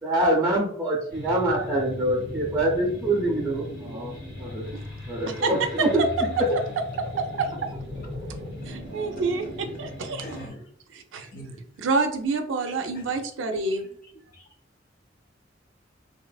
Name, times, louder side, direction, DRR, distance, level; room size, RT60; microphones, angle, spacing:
voice 1, 0.0-4.7 5.1-6.6, right 1 dB, 10° right, -5 dB, 0.6 m, -25 dB
sound 1, 1.1-10.5, left 1 dB, 85° left, 1.3 m, -38 dB
voice 2, 8.7-10.2 10.9-11.3 11.8-13.8, right 3 dB, 80° right, 6 dB, 0.4 m, -27 dB
voice 3, 10.2-10.7 11.3-11.9 12.9-13.0 14.0-14.5, right 1 dB, 50° left, 0 dB, 0.6 m, -42 dB
2.7 x 2.5 x 2.3 m, 0.64 s
head